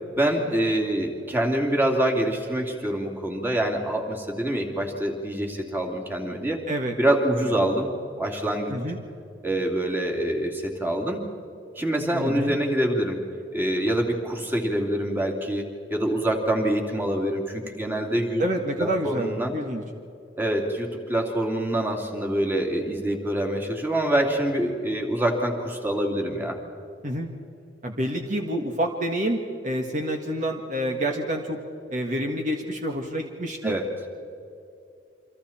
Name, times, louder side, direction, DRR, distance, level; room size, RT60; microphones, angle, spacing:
voice 1, 0.1-6.6 7.0-7.9 8.2-8.7 9.4-11.2 11.8-13.2 13.5-18.4 18.8-19.5 20.4-26.6 33.6-33.9, right 1 dB, 10° right, 1 dB, 3.0 m, -25 dB
voice 2, 12.1-12.6 18.4-19.8 27.0-27.3 27.8-31.6 31.9-33.7, right 1 dB, 45° right, 2 dB, 1.7 m, -28 dB
29.0 x 25.5 x 4.4 m, 2.6 s
head